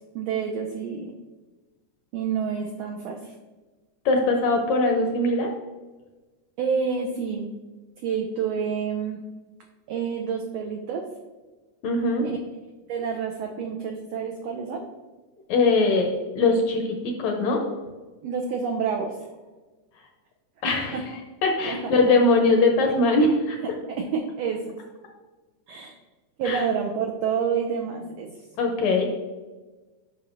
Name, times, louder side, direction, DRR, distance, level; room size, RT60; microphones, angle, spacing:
voice 1, 0.1-1.1 2.1-3.3 6.6-7.5 8.0-9.2 9.9-11.0 12.9-14.8 18.2-19.3 20.9-21.0 21.6-21.9 24.0-24.6 25.7-25.9 26.4-28.3, right 6 dB, 90° right, 2 dB, 1.4 m, -28 dB
voice 2, 4.0-5.5 11.8-12.3 15.5-16.1 16.3-17.6 20.6-21.0 21.4-23.6 26.4-26.6 28.6-29.1, left 3 dB, 75° left, 2 dB, 1.7 m, -21 dB
7.6 x 5.5 x 2.5 m, 1.2 s
omnidirectional pair, 3.6 m